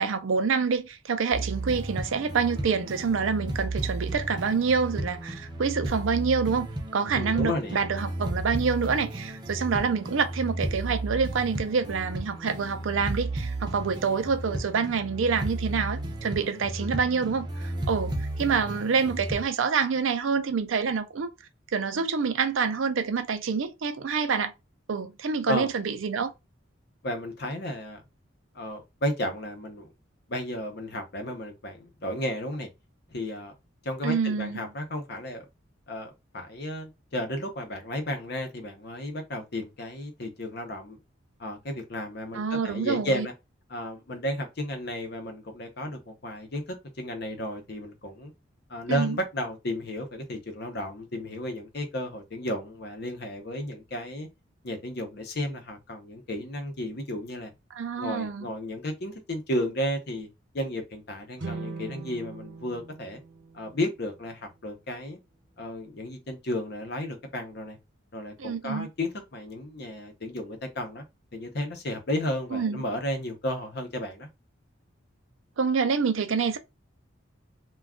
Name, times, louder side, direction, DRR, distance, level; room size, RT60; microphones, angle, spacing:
voice 1, 0.0-6.7 6.9-21.3 21.7-24.5 24.9-26.3 34.0-34.6 42.3-43.3 48.9-49.2 57.7-58.5 68.4-68.9 72.5-72.8 75.6-76.6, right 5 dB, 80° right, 0.5 m, -27 dB
sound 1, 1.3-19.4, right 1 dB, 20° right, 0.5 m, -34 dB
voice 2, 7.1-7.8 16.8-16.9 25.5-25.7 27.0-28.0 28.5-29.9 30.3-32.7 33.1-33.5 33.8-35.4 35.9-41.0 41.4-43.3 43.7-48.3 48.7-54.3 54.6-57.5 58.0-60.3 60.5-63.2 63.5-65.2 65.6-67.8 68.1-71.0 71.3-74.3, left 1 dB, 55° left, 0.7 m, -33 dB
sound 2, 61.4-64.6, right 4 dB, 60° right, 0.8 m, -41 dB
2.3 x 2.3 x 3.5 m
head